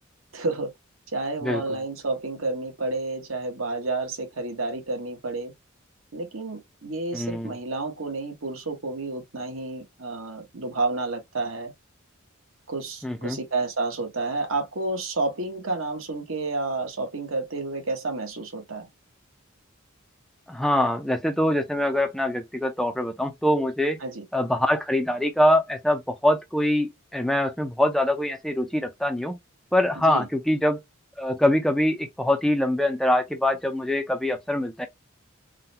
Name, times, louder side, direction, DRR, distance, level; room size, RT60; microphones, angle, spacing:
voice 1, 0.3-0.7 1.1-5.5 6.1-11.7 12.7-18.9 24.0-24.2 30.0-30.3, right 3 dB, 70° right, 1.2 m, -30 dB
voice 2, 7.1-7.5 13.0-13.4 20.5-24.0 24.3-29.3 29.7-30.8 31.2-34.9, left 1 dB, ahead, 0.4 m, -24 dB
3.7 x 2.2 x 2.7 m
head